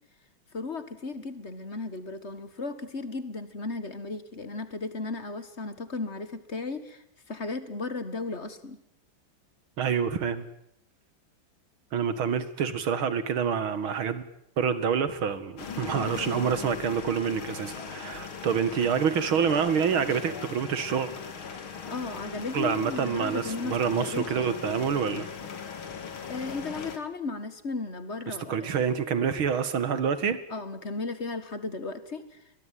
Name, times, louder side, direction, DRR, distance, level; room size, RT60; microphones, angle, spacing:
voice 1, 0.5-8.8 21.9-24.6 26.3-28.9 30.5-32.4, left 3 dB, 35° left, 12 dB, 1.9 m, -35 dB
voice 2, 9.8-10.4 11.9-14.2 14.6-21.1 22.5-25.3 28.3-30.4, right 7 dB, 75° right, 13 dB, 2.7 m, -27 dB
sound 1, 15.6-27.0, left 6 dB, 75° left, 3.0 m, -39 dB
21.5 x 21.5 x 9.3 m, 0.73 s
omnidirectional pair, 2.3 m